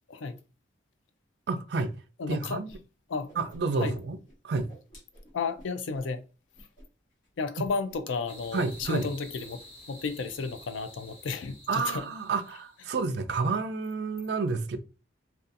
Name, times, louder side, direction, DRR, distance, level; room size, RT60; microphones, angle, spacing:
voice 1, 1.5-1.9 2.3-2.8 3.4-4.2 4.4-4.7 8.5-9.1 11.7-14.8, right 4 dB, 60° right, 0.4 m, -30 dB
voice 2, 2.2-2.6 3.1-3.3 3.8-4.0 5.3-6.2 7.4-9.6 9.9-12.0, left 4 dB, 80° left, 0.4 m, -32 dB
Whoosh swoosh swish, 2.7-2.8 3.1-4.0 4.2-6.1 6.5-6.9 7.1-7.3 7.6-8.1 8.4-8.9, equal, 45° left, 1.1 m, -52 dB
sound 1, 8.3-12.8, left 1 dB, 30° left, 0.6 m, -50 dB
2.6 x 2.3 x 2.5 m
head